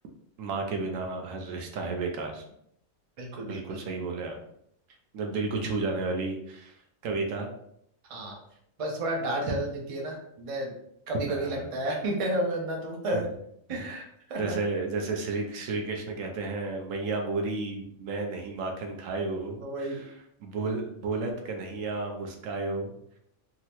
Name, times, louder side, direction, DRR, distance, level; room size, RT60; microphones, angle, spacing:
voice 1, 0.4-2.4 3.5-4.4 5.1-6.8 7.0-7.5 9.5-9.6 11.3-11.7 13.1-13.2 13.7-13.9 14.4-20.1 20.4-22.9, right 3 dB, 75° right, 3 dB, 0.9 m, -32 dB
voice 2, 3.2-3.8 8.1-8.4 8.8-10.7 11.1-13.2 13.7-14.6 19.6-20.0, right 1 dB, 45° right, 0 dB, 0.4 m, -31 dB
3.6 x 2.1 x 2.9 m, 0.73 s
omnidirectional pair, 1.4 m